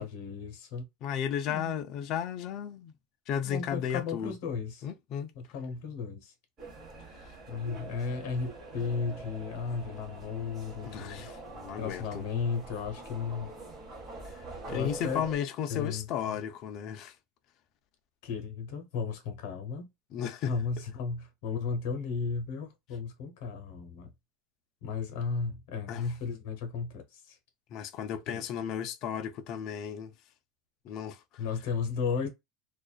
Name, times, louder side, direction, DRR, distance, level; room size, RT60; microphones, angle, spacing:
voice 1, 0.0-0.8 1.5-1.7 3.4-4.9 5.3-6.3 7.5-11.3 11.8-13.5 14.7-15.2 15.7-16.4 18.2-19.9 20.5-24.1 24.8-27.4 28.3-28.4 31.4-32.3, left 5 dB, 60° left, 0.9 m, -35 dB
voice 2, 1.0-2.9 3.3-4.3 4.8-5.3 10.8-12.2 14.2-14.4 14.7-17.1 20.1-20.5 25.9-26.0 27.7-30.1 30.8-31.2, left 8 dB, 35° left, 0.3 m, -34 dB
sound 1, 6.6-15.4, right 2 dB, 25° right, 0.9 m, -45 dB
2.4 x 2.2 x 2.3 m
cardioid pair, 180°, 0 cm